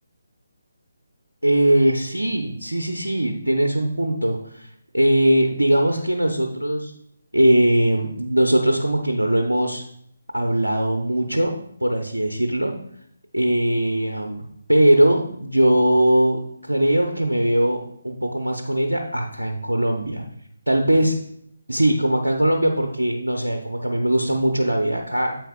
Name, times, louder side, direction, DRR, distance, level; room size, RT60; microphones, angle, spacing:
voice 1, 1.4-6.9 7.3-9.8 10.3-11.5 11.8-12.7 13.3-20.2 20.7-21.2 21.7-25.4, right 1 dB, 85° right, 3 dB, 0.8 m, -20 dB
8.9 x 7.7 x 2.4 m, 0.70 s
figure-of-eight pair, 145°, 0 cm